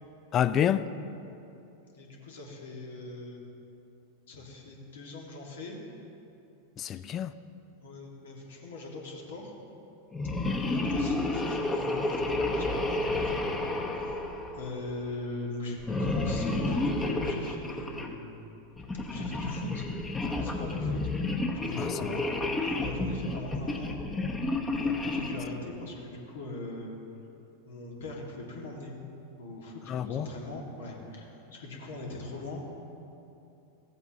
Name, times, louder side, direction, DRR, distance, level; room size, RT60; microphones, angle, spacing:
voice 1, 0.3-0.9 6.8-7.3 21.8-22.2 29.9-30.3, left 9 dB, 35° left, 0.4 m, -28 dB
voice 2, 1.9-3.4 4.3-5.8 7.8-9.5 10.6-13.7 14.0-18.4 19.1-19.9 20.3-21.0 21.5-22.2 22.7-24.0 24.8-27.0 27.7-28.9 29.4-32.6, left 2 dB, 75° left, 1.8 m, -41 dB
sound 1, 10.1-15.0 15.8-18.1 18.8-25.6, left 2 dB, 15° left, 1.0 m, -31 dB
15.0 x 7.9 x 2.8 m
hypercardioid pair, 100°, 0 cm